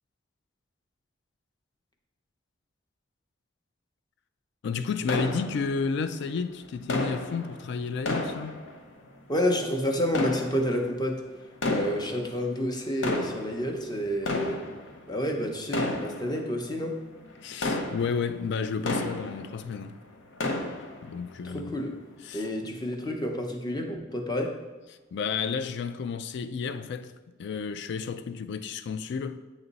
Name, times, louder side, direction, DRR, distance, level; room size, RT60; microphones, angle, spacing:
voice 1, 4.6-8.6 17.4-20.0 21.0-21.7 22.3-22.5 25.1-27.1 27.4-29.4, left 5 dB, 65° left, 0.3 m, -31 dB
sound 1, 5.1-6.1 6.9-9.2 10.0-11.1 11.5-12.4 12.8-19.8 20.1-21.2 21.7-21.8 22.4-22.5, left 2 dB, 85° left, 0.7 m, -33 dB
voice 2, 9.3-11.2 11.7-14.7 15.1-17.0 21.4-22.0 22.3-24.5, equal, 20° left, 0.7 m, -29 dB
8.8 x 3.0 x 4.0 m
head